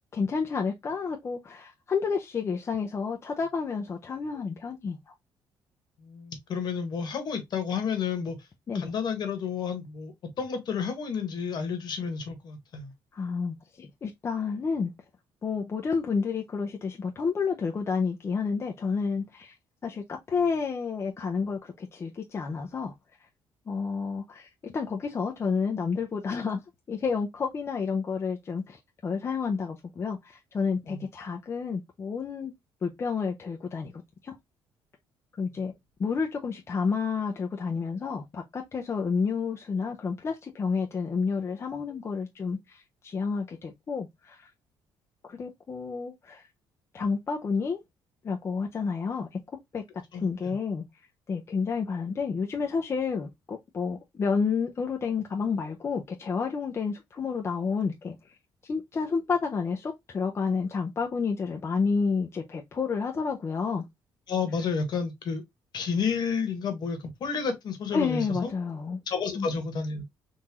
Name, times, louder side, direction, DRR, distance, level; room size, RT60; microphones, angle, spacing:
voice 1, 0.1-5.1 8.7-8.9 13.1-14.9 15.4-19.5 19.8-22.9 23.7-26.6 26.9-32.5 32.8-34.4 35.4-35.7 36.0-44.5 45.3-46.5 46.9-47.8 48.2-49.4 49.7-49.8 50.1-50.8 51.3-58.4 58.6-63.8 67.9-69.0 69.4-69.5, left 5 dB, 30° left, 0.5 m, -30 dB
voice 2, 6.0-8.4 8.7-12.9 30.9-31.0 50.1-50.5 64.3-65.4 65.7-68.5 69.1-70.0, left 6 dB, 55° left, 1.3 m, -31 dB
3.7 x 2.6 x 2.8 m
cardioid pair, 125°, 9 cm